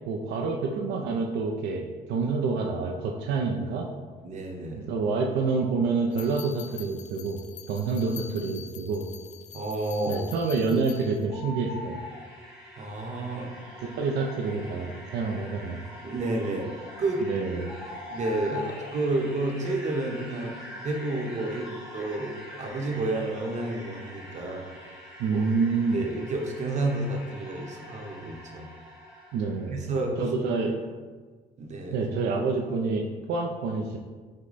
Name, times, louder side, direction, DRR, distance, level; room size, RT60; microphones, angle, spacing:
voice 1, 0.1-3.9 4.9-7.4 7.7-9.1 10.1-12.0 14.0-15.8 17.2-17.8 25.2-26.0 29.3-29.8 30.2-30.8 31.9-34.0, right 4 dB, 75° right, 0 dB, 0.5 m, -27 dB
voice 2, 4.2-4.9 8.0-8.1 9.5-10.2 12.8-13.5 16.0-17.2 17.5-17.7 18.1-20.5 20.8-25.5 25.9-28.7 29.7-30.2 31.6-32.0, right 2 dB, 45° right, 1 dB, 0.9 m, -31 dB
sound 1, 6.1-11.2, left 8 dB, 45° left, 0.4 m, -45 dB
sound 2, 11.1-29.8, equal, 5° right, 1.2 m, -45 dB
sound 3, 11.3-12.2 16.8-16.9 17.6-18.9, left 2 dB, 80° left, 1.0 m, -39 dB
6.1 x 2.2 x 4.0 m, 1.4 s
cardioid pair, 110°, 17 cm